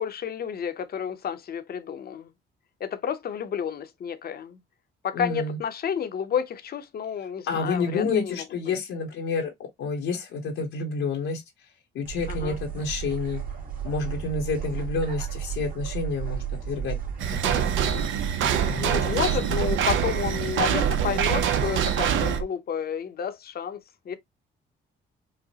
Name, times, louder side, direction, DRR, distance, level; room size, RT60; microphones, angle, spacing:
voice 1, 0.0-2.3 2.8-4.6 5.0-8.4 12.3-12.6 18.8-24.2, left 8 dB, 50° left, 0.7 m, -31 dB
voice 2, 5.1-5.6 7.5-9.5 9.8-11.4 11.9-13.4 13.8-17.0 17.4-18.0 18.4-19.4, left 4 dB, 85° left, 1.1 m, -29 dB
sound 1, 12.0-22.4, right 9 dB, 45° right, 1.4 m, -33 dB
sound 2, 17.2-22.4, right 8 dB, 80° right, 0.7 m, -25 dB
4.8 x 2.1 x 2.8 m
cardioid pair, 90°, 20 cm